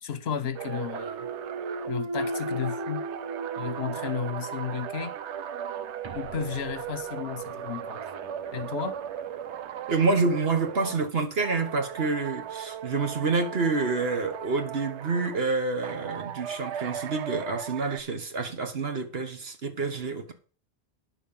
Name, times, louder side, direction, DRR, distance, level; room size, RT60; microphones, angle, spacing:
voice 1, 0.0-1.2 1.9-3.0 3.6-5.1 6.1-8.0 8.5-9.0, left 7 dB, 70° left, 1.2 m, -33 dB
sound 1, 0.5-11.1 11.4-15.4 15.8-18.0, right 9 dB, 85° right, 1.0 m, -37 dB
Thump thud, 0.9-4.9 5.4-10.0, right 1 dB, 35° right, 0.5 m, -38 dB
voice 2, 9.9-20.3, right 4 dB, 65° right, 1.6 m, -28 dB
9.8 x 6.9 x 5.5 m
omnidirectional pair, 1.1 m